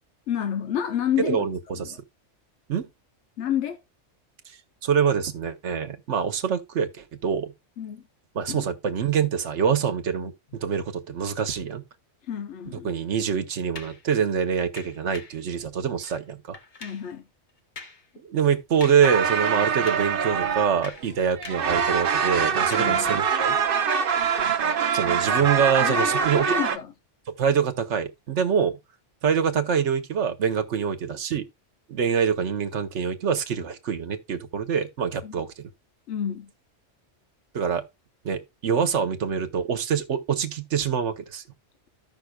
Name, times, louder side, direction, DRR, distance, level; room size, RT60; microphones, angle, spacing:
voice 1, 0.3-1.5 1.7-1.9 3.4-3.8 7.8-8.0 8.5-8.6 12.3-12.9 16.8-17.2 22.7-23.2 25.8-26.9 35.2-35.3 36.1-36.5, left 9 dB, 70° left, 0.9 m, -29 dB
voice 2, 1.2-2.0 2.7-2.9 4.5-4.6 4.8-7.5 8.3-11.8 12.8-16.6 18.2-23.5 24.9-26.5 27.4-28.7 29.2-31.5 31.9-35.7 37.5-37.8 38.2-41.4, right 7 dB, 70° right, 1.2 m, -25 dB
sound 1, 13.7-14.0 14.8-15.4 16.0-16.2 16.5-17.1 17.8-18.1 18.4-18.5 18.8-19.2 19.4-20.2 20.6-21.8 22.0-23.0 23.6-23.8, left 4 dB, 45° left, 1.0 m, -43 dB
sound 2, 19.0-21.1 21.4-26.8, right 7 dB, 55° right, 0.8 m, -24 dB
14.0 x 5.6 x 2.2 m
omnidirectional pair, 1.3 m